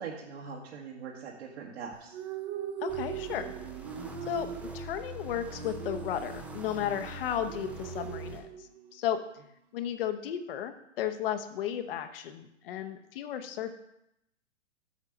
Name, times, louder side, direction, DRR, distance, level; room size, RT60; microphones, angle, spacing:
voice 1, 0.0-2.2, right 6 dB, 55° right, -2 dB, 1.7 m, -41 dB
sound 1, 1.9-9.0, right 9 dB, 30° right, 0.9 m, -41 dB
voice 2, 2.8-3.5 4.3-9.2 9.7-13.7, left 10 dB, 50° left, 8 dB, 1.0 m, -34 dB
sound 2, 2.9-8.4, right 2 dB, 5° right, 0.5 m, -44 dB
8.1 x 5.6 x 6.4 m, 0.82 s
hypercardioid pair, 120°, 38 cm